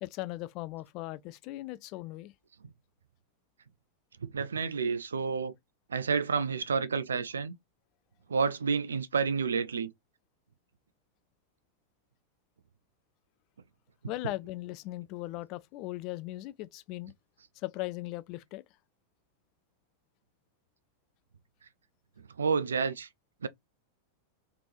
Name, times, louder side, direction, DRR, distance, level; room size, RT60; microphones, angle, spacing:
voice 1, 0.0-2.3 14.1-17.1 17.6-18.6, left 17 dB, 40° left, 0.4 m, -38 dB
voice 2, 4.2-5.5 5.9-7.5 8.3-9.9 14.0-14.3 22.4-23.1 23.4-23.5, right 5 dB, 70° right, 0.4 m, -30 dB
3.4 x 2.9 x 2.6 m
figure-of-eight pair, 90°, 0 cm